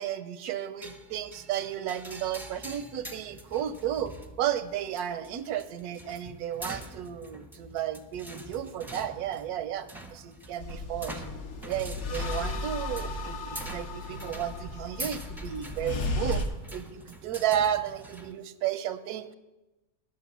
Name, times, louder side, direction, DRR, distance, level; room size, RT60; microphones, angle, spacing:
voice 1, 0.0-11.2 11.6-16.4 16.7-19.3, right 10 dB, 85° right, 13 dB, 1.1 m, -33 dB
sound 1, 0.8-18.3, right 1 dB, ahead, 0.6 m, -45 dB
sound 2, 10.6-16.4, left 2 dB, 55° left, 1.1 m, -35 dB
10.5 x 6.2 x 7.2 m, 1.0 s
omnidirectional pair, 1.6 m